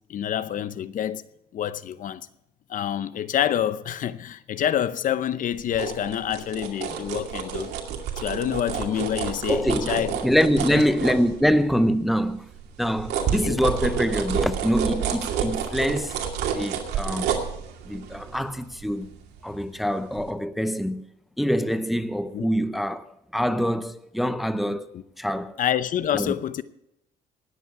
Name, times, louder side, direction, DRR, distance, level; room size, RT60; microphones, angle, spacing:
voice 1, 0.1-1.2 1.5-2.2 2.7-7.7 8.2-10.1 10.7-10.8 13.2-13.6 22.3-22.5 24.7-25.0 25.6-26.6, left 10 dB, 50° left, 0.7 m, -27 dB
sound 1, 5.5-11.8 12.2-19.8 20.2-20.3, right 7 dB, 75° right, 2.4 m, -30 dB
voice 2, 9.5-12.5 12.8-16.2 16.5-17.3 17.9-19.1 19.4-21.0 21.4-24.9 25.2-25.5 26.1-26.3, equal, ahead, 0.6 m, -24 dB
19.5 x 8.4 x 4.8 m
cardioid pair, 110°, 17 cm